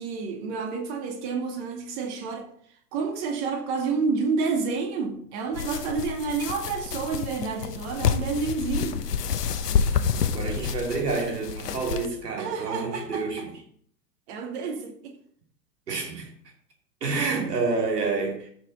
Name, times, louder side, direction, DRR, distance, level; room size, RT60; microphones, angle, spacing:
voice 1, 0.0-2.5 2.9-9.0 12.4-13.5 14.3-15.1, right 4 dB, 45° right, 2.2 m, -29 dB
sound 1, 5.5-12.1, left 7 dB, 70° left, 1.0 m, -28 dB
voice 2, 10.3-13.5 15.9-16.3 17.0-18.5, right 4 dB, 70° right, 2.8 m, -28 dB
14.0 x 5.8 x 4.0 m
figure-of-eight pair, 100°, 49 cm